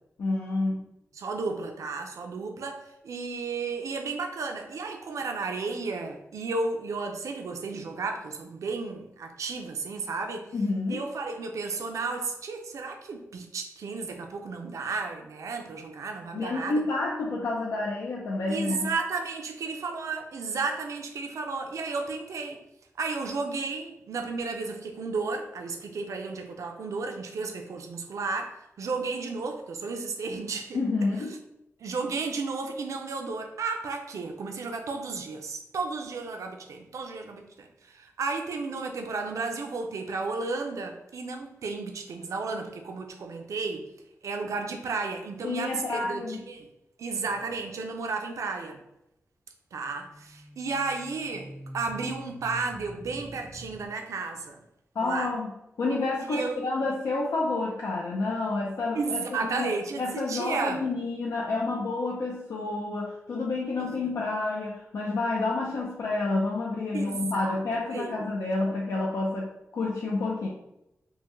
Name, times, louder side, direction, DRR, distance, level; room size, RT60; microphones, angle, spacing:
voice 1, 0.2-0.9 10.5-11.0 16.3-18.9 30.7-31.4 45.4-46.4 55.0-55.5 55.8-59.7 60.0-70.5, left 3 dB, 85° left, -3 dB, 0.5 m, -29 dB
voice 2, 1.1-10.5 10.9-16.8 18.5-22.6 23.0-30.8 31.8-43.9 44.2-46.7 47.0-48.8 49.7-54.6 55.0-55.3 56.3-56.6 58.9-60.9 63.8-63.9 66.9-68.3, right 4 dB, 85° right, 4 dB, 0.4 m, -33 dB
sound 1, 47.2-47.6 49.9-53.9, equal, 5° left, 0.4 m, -45 dB
3.4 x 2.2 x 3.1 m, 0.87 s
wide cardioid pair, 85°, 5 cm